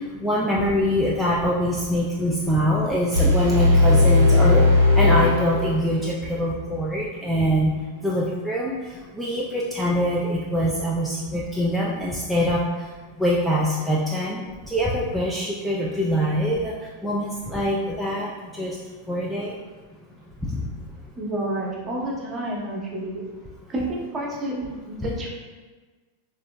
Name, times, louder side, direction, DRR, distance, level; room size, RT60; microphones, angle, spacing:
voice 1, 0.2-4.6 5.0-7.7 8.0-8.7 9.1-12.6 13.2-14.4 14.7-16.7 17.0-18.3 18.6-18.8 19.1-19.5 20.5-20.6, equal, ahead, -6 dB, 0.4 m, -23 dB
sound 1, 3.1-6.1, left 2 dB, 70° right, 0.5 m, -17 dB
voice 2, 21.1-23.2 23.7-25.3, right 1 dB, 25° right, -3 dB, 0.7 m, -29 dB
3.6 x 2.5 x 2.2 m, 1.4 s
figure-of-eight pair, 90°, 0 cm